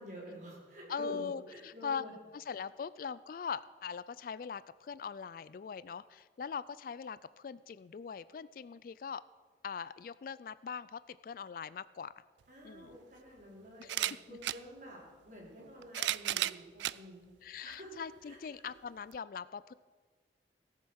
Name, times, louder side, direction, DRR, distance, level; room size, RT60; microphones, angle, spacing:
voice 1, 0.0-2.1 12.5-17.3 17.6-17.9 18.2-18.7, equal, 45° right, -3 dB, 4.4 m, -49 dB
voice 2, 0.9-2.0 2.3-9.2 9.6-12.1 12.6-13.0 13.8-13.9 14.3-14.4 16.0-16.1 17.4-19.7, left 6 dB, 50° left, 17 dB, 0.3 m, -41 dB
sound 1, 12.4-12.5 13.8-14.6 15.6-17.0 17.7-17.8 19.1-19.2, right 14 dB, 90° right, 0.3 m, -34 dB
17.5 x 7.4 x 6.3 m, 1.4 s
head